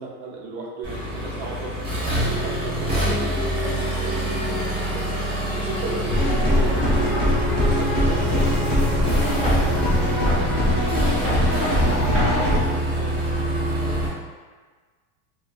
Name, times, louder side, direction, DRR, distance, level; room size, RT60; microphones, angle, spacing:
voice 1, 0.0-1.7 2.1-5.1 5.5-7.3 7.6-10.5 10.7-10.9 12.4-14.0, right 3 dB, 50° right, -3 dB, 0.7 m, -35 dB
Accelerating revving vroom, 0.8-14.1, right 1 dB, 15° right, 0.4 m, -25 dB
sound 1, 6.1-12.6, left 1 dB, 20° left, 0.9 m, -22 dB
2.9 x 2.2 x 2.5 m, 1.5 s
supercardioid pair, 160°, 45 cm